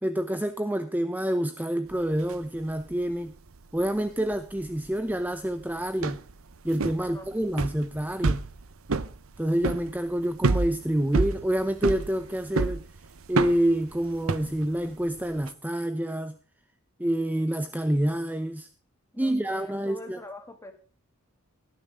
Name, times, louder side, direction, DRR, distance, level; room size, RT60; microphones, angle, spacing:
voice 1, 0.0-3.3 3.7-6.2 6.6-8.5 9.4-12.8 13.3-16.4 17.0-18.7 19.2-20.2, right 1 dB, 10° right, 10 dB, 0.7 m, -27 dB
sound 1, 1.9-2.3 2.6-3.1 3.5-15.5, right 3 dB, 75° right, 0.8 m, -29 dB
voice 2, 7.0-7.3 19.1-20.7, left 2 dB, 15° left, 5 dB, 2.5 m, -44 dB
17.5 x 10.5 x 3.5 m, 0.40 s
head